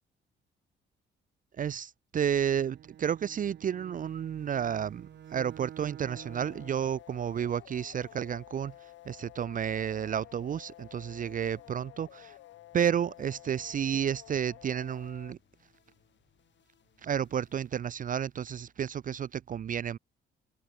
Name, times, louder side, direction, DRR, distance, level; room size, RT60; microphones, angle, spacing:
voice 1, 1.6-8.7 9.1-12.3 12.7-15.4 17.0-20.0, right 8 dB, 45° right, 0.5 m, -31 dB
Bowed string instrument, 2.2-7.0, right 10 dB, 60° right, 0.9 m, -50 dB
sound 1, 4.0-19.4, left 10 dB, 65° left, 7.9 m, -69 dB
sound 2, 6.0-15.3, left 15 dB, 80° left, 1.4 m, -52 dB
cardioid pair, 90°, 20 cm